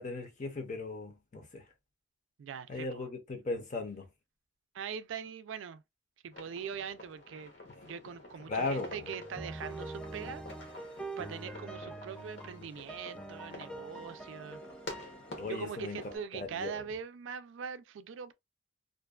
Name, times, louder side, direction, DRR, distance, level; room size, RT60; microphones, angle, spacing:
voice 1, 0.0-1.6 2.7-4.1 8.5-9.1 15.4-16.8, left 3 dB, 40° left, 0.6 m, -37 dB
voice 2, 2.4-3.1 4.7-5.8 6.2-7.5 7.8-10.4 11.2-14.6 15.4-18.3, right 7 dB, 80° right, 0.3 m, -42 dB
sound 1, 6.3-16.3, left 2 dB, 65° left, 0.9 m, -50 dB
sound 2, 8.5-16.2, right 2 dB, 5° left, 0.3 m, -45 dB
2.5 x 2.2 x 2.3 m
head